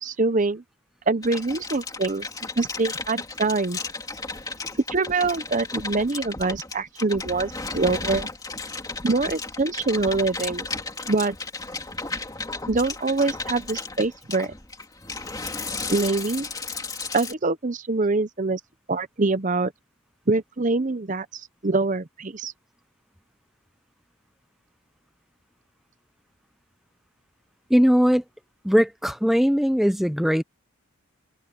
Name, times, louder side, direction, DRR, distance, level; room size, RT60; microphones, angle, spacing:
voice 1, 0.0-0.6 1.1-2.3 2.6-3.8 4.9-8.3 9.0-10.7 11.1-11.4 12.7-14.5 15.9-16.5 17.1-18.6 18.9-19.7 20.3-21.3 21.6-22.5, right 3 dB, 35° right, 0.7 m, -24 dB
sound 1, 1.2-17.3, left 3 dB, 15° left, 2.9 m, -34 dB
voice 2, 27.7-28.2 28.6-30.4, equal, ahead, 0.5 m, -20 dB
head